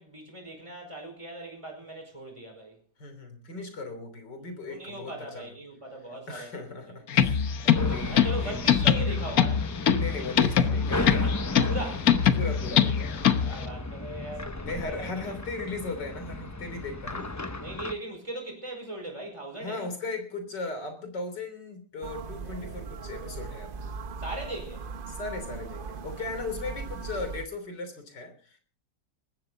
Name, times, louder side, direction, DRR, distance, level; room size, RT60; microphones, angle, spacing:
voice 1, 0.0-2.8 4.7-6.5 7.0-7.2 8.1-9.6 11.6-12.1 13.4-15.1 17.6-19.9 24.2-24.8, right 1 dB, 15° right, 4.9 m, -39 dB
voice 2, 3.0-5.5 6.3-8.5 10.0-11.4 12.3-13.5 14.6-17.3 19.6-23.8 25.1-28.6, left 3 dB, 75° left, 4.0 m, -37 dB
sound 1, 7.1-13.7, left 8 dB, 60° left, 1.4 m, -23 dB
sound 2, 7.7-17.9, left 2 dB, 25° left, 0.3 m, -35 dB
sound 3, 22.0-27.5, right 5 dB, 40° right, 0.8 m, -39 dB
19.5 x 15.0 x 4.0 m
omnidirectional pair, 1.9 m